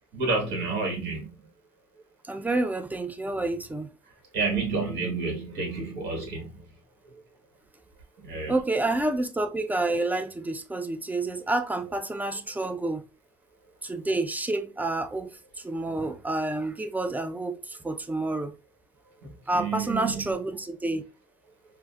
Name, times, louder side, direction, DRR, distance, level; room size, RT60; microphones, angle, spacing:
voice 1, 0.1-1.5 4.3-6.6 7.0-7.2 8.2-8.6 19.2-20.3, right 4 dB, 80° right, 1.4 m, -30 dB
voice 2, 2.3-3.9 8.5-13.0 13.8-15.3 15.6-18.5 19.5-21.0, right 2 dB, 10° right, 0.4 m, -29 dB
4.9 x 2.0 x 2.2 m
cardioid pair, 110°, 17 cm